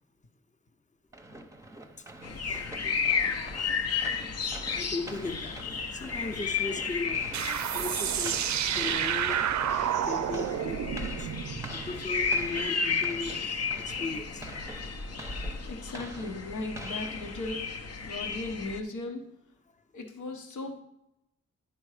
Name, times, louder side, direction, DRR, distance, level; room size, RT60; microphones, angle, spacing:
sound 1, 1.1-17.9, right 1 dB, 10° right, 0.8 m, -47 dB
sound 2, 2.2-18.8, left 5 dB, 55° left, 0.8 m, -33 dB
voice 1, 2.3-3.7 4.7-8.4 8.6-9.4 10.1-11.3 11.7-13.3 13.8-14.4, left 3 dB, 25° left, 6 dB, 0.8 m, -38 dB
sound 3, 7.3-12.6, right 9 dB, 70° right, 0.5 m, -30 dB
voice 2, 15.7-19.2 19.9-20.8, left 2 dB, 80° left, 4 dB, 1.1 m, -37 dB
9.9 x 4.4 x 4.9 m, 0.85 s
cardioid pair, 70°, 30 cm